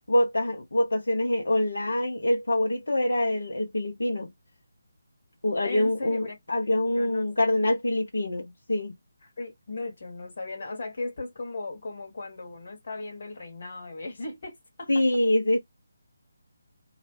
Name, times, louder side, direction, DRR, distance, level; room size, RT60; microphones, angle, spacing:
voice 1, 0.1-4.3 5.4-8.9 14.9-15.6, left 1 dB, 65° left, 0.6 m, -25 dB
voice 2, 5.6-6.4 6.9-7.3 9.2-15.0, left 2 dB, 45° left, 1.0 m, -37 dB
2.7 x 2.1 x 3.1 m
figure-of-eight pair, 150°, 0 cm